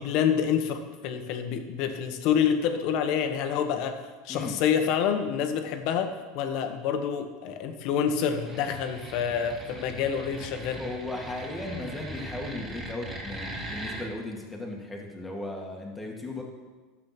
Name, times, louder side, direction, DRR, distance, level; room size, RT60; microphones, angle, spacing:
voice 1, 0.0-4.0 4.2-10.8, left 8 dB, 55° left, 7 dB, 1.3 m, -27 dB
sound 1, 8.4-14.0, right 1 dB, 15° right, 2.8 m, -40 dB
voice 2, 10.8-16.4, left 2 dB, 10° left, -1 dB, 2.0 m, -36 dB
12.0 x 7.6 x 6.0 m, 1.3 s
supercardioid pair, 140°, 0 cm